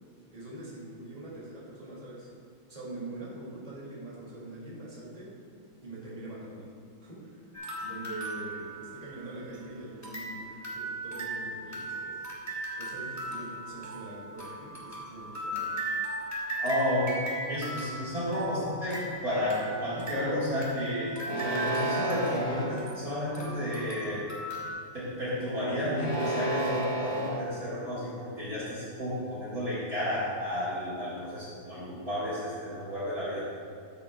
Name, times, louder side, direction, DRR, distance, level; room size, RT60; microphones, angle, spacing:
voice 1, 0.3-2.3 2.7-5.3 5.8-6.7 7.0-7.5 7.8-12.2 12.8-15.7, right 1 dB, 15° right, -7 dB, 2.4 m, -43 dB
sound 1, 7.5-9.6 10.0-24.7, right 1 dB, 10° left, 1.2 m, -38 dB
voice 2, 16.6-24.2 24.9-33.5, left 1 dB, 40° right, -10 dB, 2.3 m, -32 dB
sound 2, 21.2-22.7 23.4-23.9 25.9-27.4, right 1 dB, 40° left, 0.5 m, -32 dB
13.5 x 7.8 x 2.4 m, 2.3 s
omnidirectional pair, 2.4 m